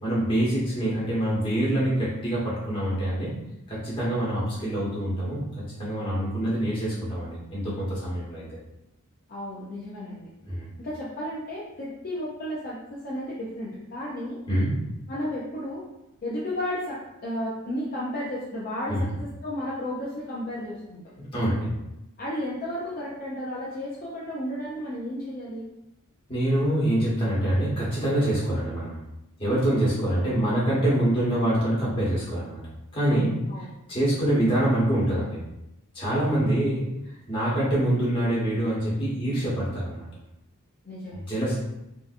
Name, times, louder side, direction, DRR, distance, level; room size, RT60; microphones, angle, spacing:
voice 1, 0.0-3.3 3.7-5.4 5.8-8.5 10.5-10.7 14.5-14.7 18.9-19.1 21.2-21.7 26.3-28.9 29.4-32.6 32.9-35.4 35.9-36.9 37.3-40.1 41.1-41.6, right 1 dB, 25° left, -7 dB, 1.3 m, -25 dB
voice 2, 9.3-10.3 10.8-14.4 15.1-15.8 16.2-21.0 22.2-25.7 33.5-33.7 40.8-41.2, left 1 dB, 40° left, -7 dB, 0.6 m, -33 dB
3.6 x 2.7 x 2.5 m, 0.90 s
head